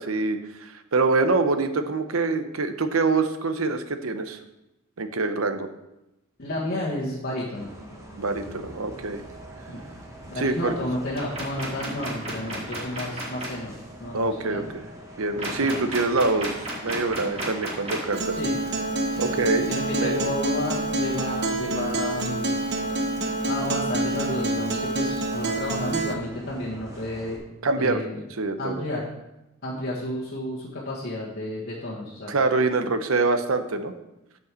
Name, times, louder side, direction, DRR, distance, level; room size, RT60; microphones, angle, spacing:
voice 1, 0.0-4.4 5.0-5.7 8.2-9.2 10.3-10.8 14.1-14.8 15.2-18.3 19.2-19.7 20.0-20.3 27.6-28.0 28.4-28.9 32.3-33.9, right 3 dB, 80° right, 9 dB, 0.8 m, -25 dB
voice 2, 6.4-7.7 9.7-9.8 10.3-13.7 14.0-14.7 15.3-15.8 18.4-18.6 19.1-22.6 23.5-27.4 27.8-28.2 28.6-29.0 29.6-32.3, left 1 dB, 50° left, -7 dB, 1.6 m, -31 dB
Bus, 7.5-27.4, right 1 dB, 15° right, 1.4 m, -45 dB
sound 1, 11.2-13.5 15.4-18.1, right 1 dB, 30° right, 2.6 m, -33 dB
Acoustic guitar, 18.1-26.1, right 2 dB, 55° right, 1.0 m, -27 dB
7.9 x 5.4 x 6.8 m, 0.93 s
head